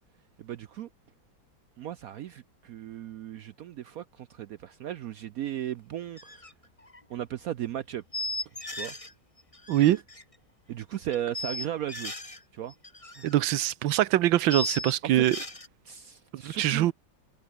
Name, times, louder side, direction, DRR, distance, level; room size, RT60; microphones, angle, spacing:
voice 1, 0.4-0.9 1.8-6.4 7.1-8.0 8.8-9.0 10.7-12.1 12.5-12.7 13.2-13.3 15.0-15.2 15.8-16.9, right 11 dB, 70° right, 0.8 m, -36 dB
sound 1, 6.2-6.5 6.8-7.0 8.1-9.1 9.4-10.2 11.1-12.4 12.7-13.3 13.6-13.7 14.5-15.7, left 2 dB, 15° left, 2.5 m, -36 dB
voice 2, 9.7-10.0 13.2-15.4 16.3-16.9, right 13 dB, 85° right, 1.6 m, -23 dB
omnidirectional pair, 2.0 m